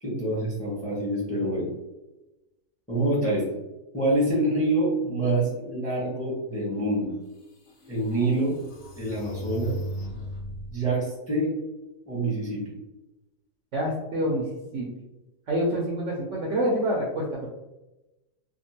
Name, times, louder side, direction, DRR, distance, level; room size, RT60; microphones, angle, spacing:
voice 1, 0.0-1.7 2.9-3.5 3.9-7.1 7.9-8.5 8.9-9.7 10.7-11.5 12.1-12.7, right 1 dB, 5° left, -5 dB, 0.7 m, -26 dB
sound 1, 7.0-7.1 7.7-10.8, equal, 55° left, 1.0 m, -37 dB
voice 2, 13.7-14.9 15.5-17.5, equal, 65° right, -3 dB, 0.8 m, -27 dB
3.5 x 2.2 x 2.8 m, 1.0 s
omnidirectional pair, 1.7 m